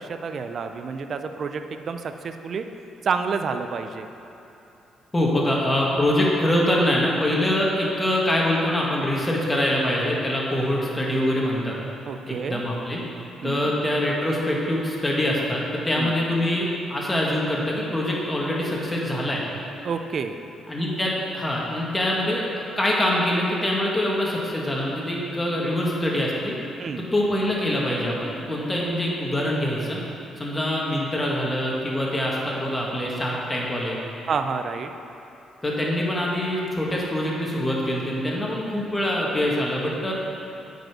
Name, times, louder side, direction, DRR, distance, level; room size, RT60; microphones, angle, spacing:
voice 1, 0.0-2.7 3.0-4.1 12.1-12.6 13.4-13.7 15.9-16.1 19.8-20.4 26.8-27.1 34.3-34.9, right 5 dB, 55° right, 7 dB, 0.5 m, -29 dB
voice 2, 5.1-11.8 12.3-13.0 13.4-19.4 20.7-26.5 27.1-30.0 30.4-34.0 35.6-40.1, left 1 dB, 15° left, -3 dB, 1.9 m, -24 dB
9.0 x 5.4 x 6.1 m, 2.9 s
cardioid pair, 90°, 0 cm